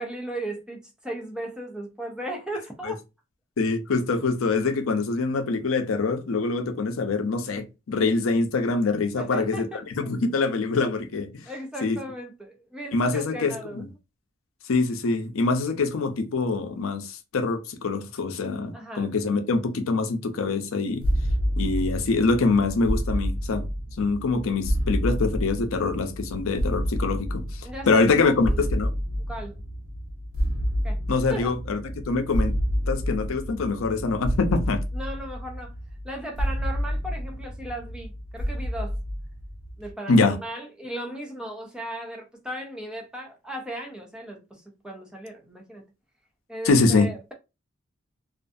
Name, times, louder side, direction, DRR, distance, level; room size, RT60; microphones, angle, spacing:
voice 1, 0.0-3.0 9.2-10.4 11.4-13.9 18.7-19.1 27.6-28.7 29.3-29.6 30.8-31.0 31.3-31.5 34.9-35.7 36.0-39.0 39.8-45.8 46.5-47.3, right 1 dB, 5° right, 0.4 m, -37 dB
voice 2, 3.6-9.7 10.0-11.4 11.8-12.0 12.9-13.9 14.7-21.0 21.6-23.7 24.0-27.4 27.9-28.9 31.1-32.5 32.9-34.8 40.1-40.4 46.6-47.1, left 3 dB, 80° left, 0.5 m, -24 dB
sound 1, 21.0-39.9, equal, 90° right, 0.8 m, -29 dB
2.4 x 2.3 x 2.5 m
head